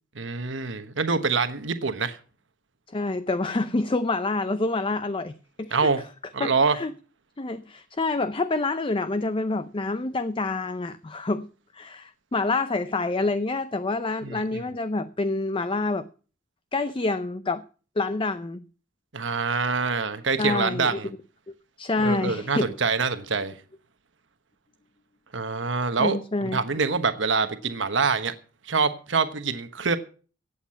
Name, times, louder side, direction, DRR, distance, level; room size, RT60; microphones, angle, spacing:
voice 1, 0.1-2.2 5.7-6.0 6.3-6.8 14.2-14.6 19.1-21.1 22.0-23.6 25.3-28.3 28.6-30.0, right 4 dB, 70° right, 1.2 m, -25 dB
voice 2, 2.9-5.9 6.4-6.9 7.4-11.5 11.7-16.1 16.7-17.6 18.0-18.6 20.4-21.0 21.8-22.7 26.0-26.6, left 3 dB, 25° left, 0.5 m, -27 dB
16.0 x 8.3 x 5.7 m
head